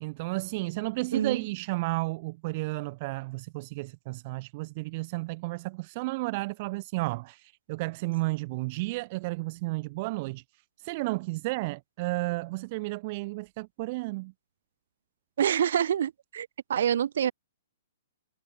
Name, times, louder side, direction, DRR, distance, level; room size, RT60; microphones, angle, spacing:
voice 1, 0.0-10.4 10.8-14.3, right 23 dB, 40° right, 0.4 m, -32 dB
voice 2, 15.4-17.3, right 9 dB, 60° right, 1.0 m, -26 dB
figure-of-eight pair, 115°, 0 cm